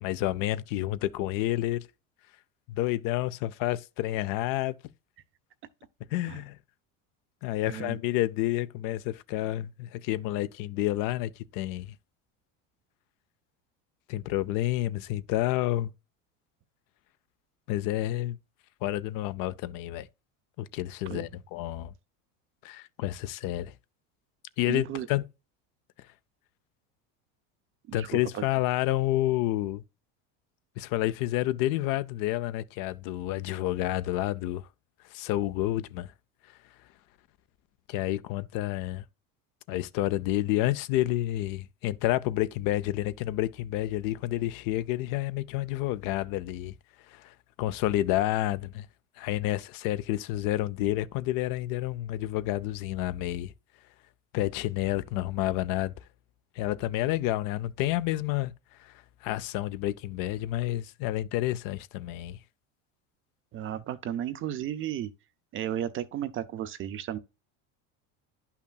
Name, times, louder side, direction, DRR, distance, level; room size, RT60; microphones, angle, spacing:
voice 1, 0.0-1.9 2.7-4.8 6.1-6.6 7.4-11.9 14.1-15.9 17.7-18.4 18.8-20.1 20.6-21.9 22.6-23.7 24.6-25.2 27.9-29.8 30.8-34.7 35.1-36.1 37.9-39.0 39.7-46.7 47.1-48.9 49.2-53.5 54.3-55.9 56.6-58.5 58.8-58.9 59.2-62.4, left 15 dB, 60° left, 0.5 m, -29 dB
voice 2, 7.7-8.0 21.1-21.3 24.7-25.1 27.9-28.1 28.3-28.4 63.5-65.1 65.5-67.2, right 11 dB, 35° right, 0.4 m, -34 dB
10.5 x 5.7 x 2.3 m
supercardioid pair, 110°, 38 cm